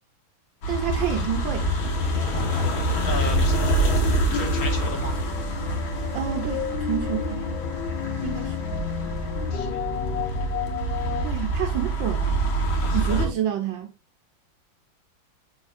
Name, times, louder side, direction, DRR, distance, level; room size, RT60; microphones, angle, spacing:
sound 1, 0.6-13.3, right 1 dB, 85° left, 2.4 m, -26 dB
voice 1, 0.7-1.6 6.1-7.4 8.2-8.6 11.2-12.4 12.9-13.9, right 9 dB, 75° right, 1.5 m, -29 dB
voice 2, 3.1-3.5 4.3-5.1 9.5-10.1 12.8-13.3, left 3 dB, 50° left, 2.1 m, -34 dB
sound 2, 4.3-11.2, left 9 dB, 70° left, 1.6 m, -32 dB
7.3 x 6.0 x 2.5 m
omnidirectional pair, 2.1 m